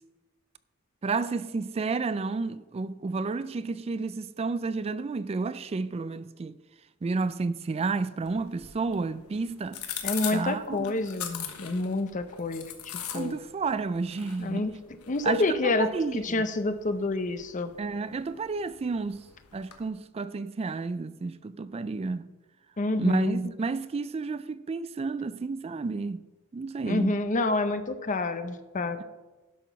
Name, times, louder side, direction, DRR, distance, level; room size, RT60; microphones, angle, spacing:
voice 1, 1.0-6.6 7.0-9.8 10.3-11.0 13.1-14.7 15.2-16.4 17.8-19.3 19.5-22.3 23.0-26.2 26.5-27.2 29.0-29.1, right 4 dB, 25° right, 0.3 m, -31 dB
sound 1, 8.2-19.9, left 9 dB, 80° left, 1.2 m, -42 dB
voice 2, 10.0-13.4 14.4-14.7 15.1-17.7 22.8-23.4 26.8-29.0, left 2 dB, 35° left, 0.6 m, -28 dB
11.5 x 6.0 x 5.7 m
head